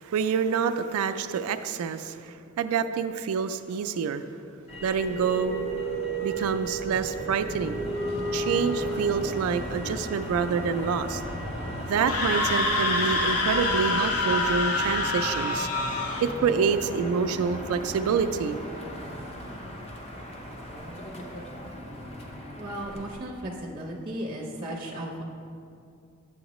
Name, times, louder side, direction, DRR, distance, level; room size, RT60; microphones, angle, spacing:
voice 1, 0.0-4.2 4.8-5.7 6.2-7.8 8.3-11.2 11.9-15.7 16.2-18.6, right 6 dB, 85° right, 10 dB, 0.3 m, -27 dB
sound 1, 4.6-10.0 11.9-12.0 12.2-17.7, right 2 dB, 65° left, 1.6 m, -36 dB
Motor vehicle (road), 4.7-23.2, equal, 30° left, 0.6 m, -37 dB
Screaming, 11.9-16.3, left 2 dB, 90° left, 0.8 m, -26 dB
voice 2, 22.6-25.2, right 1 dB, 25° right, -1 dB, 0.6 m, -35 dB
7.7 x 7.1 x 3.0 m, 2.4 s
head